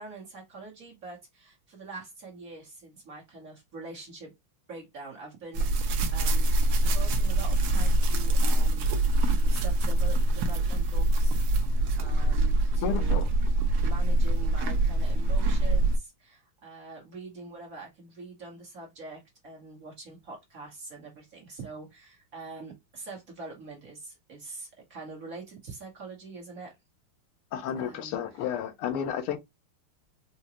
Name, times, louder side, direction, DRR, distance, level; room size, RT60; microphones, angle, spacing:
voice 1, 0.0-4.3 4.7-6.5 6.8-8.9 9.2-13.3 13.8-26.7 27.8-28.5, right 3 dB, 45° right, 1.3 m, -44 dB
sound 1, 5.5-16.0, right 2 dB, 70° right, 0.9 m, -24 dB
voice 2, 12.8-13.3 27.5-29.4, left 9 dB, 90° left, 1.7 m, -31 dB
4.8 x 2.2 x 2.8 m
omnidirectional pair, 2.4 m